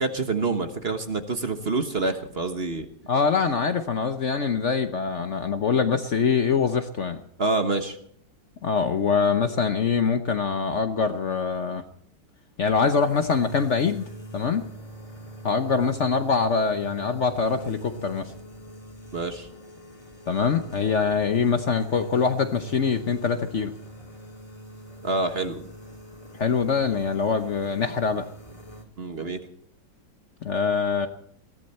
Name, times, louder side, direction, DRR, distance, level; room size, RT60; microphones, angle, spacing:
voice 1, 0.0-2.9 7.4-8.0 19.1-19.5 25.0-25.7 29.0-29.4, right 3 dB, 40° right, 8 dB, 1.3 m, -27 dB
voice 2, 3.1-7.2 8.6-11.8 12.6-14.0 14.3-14.7 15.4-18.3 20.3-23.7 26.3-28.3 30.4-31.1, left 5 dB, 50° left, 9 dB, 1.1 m, -24 dB
sound 1, 12.7-28.8, right 1 dB, 20° left, 3.0 m, -43 dB
21.0 x 15.5 x 4.3 m, 0.66 s
omnidirectional pair, 1.9 m